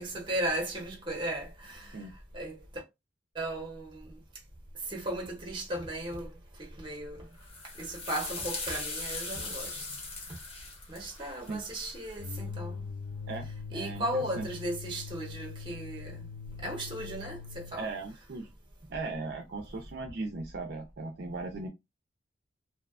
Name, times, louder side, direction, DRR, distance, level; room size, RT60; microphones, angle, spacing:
voice 1, 0.0-2.0 2.3-2.8 3.4-4.2 4.9-6.3 6.6-7.3 7.8-9.9 10.9-12.8 13.7-16.2 16.6-17.9, right 1 dB, 25° right, 0.8 m, -36 dB
sound 1, 7.4-12.3, left 3 dB, 30° left, 0.7 m, -40 dB
sound 2, 12.2-17.8, left 5 dB, 70° left, 0.3 m, -42 dB
voice 2, 13.3-14.5 17.7-18.5 18.9-21.7, right 3 dB, 55° right, 0.4 m, -38 dB
2.6 x 2.2 x 2.3 m
head